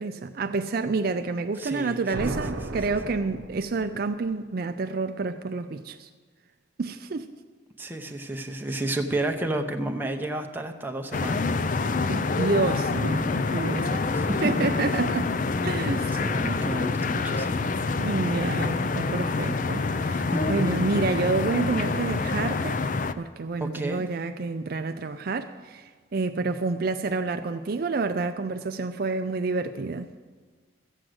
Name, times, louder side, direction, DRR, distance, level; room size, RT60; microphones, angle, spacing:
voice 1, 0.0-6.1 6.8-7.3 12.1-14.1 14.4-15.3 15.6-16.2 18.0-22.8 23.2-30.1, right 3 dB, 50° right, 8 dB, 0.4 m, -29 dB
voice 2, 1.6-2.4 7.8-11.5 14.1-14.4 16.1-17.7 20.3-20.9 23.6-24.0, right 1 dB, 10° right, 3 dB, 0.8 m, -31 dB
sound 1, 2.1-4.1, right 2 dB, 75° right, 0.8 m, -34 dB
sound 2, 11.1-23.1, left 3 dB, 40° left, 0.4 m, -27 dB
14.0 x 7.6 x 7.9 m, 1.5 s
head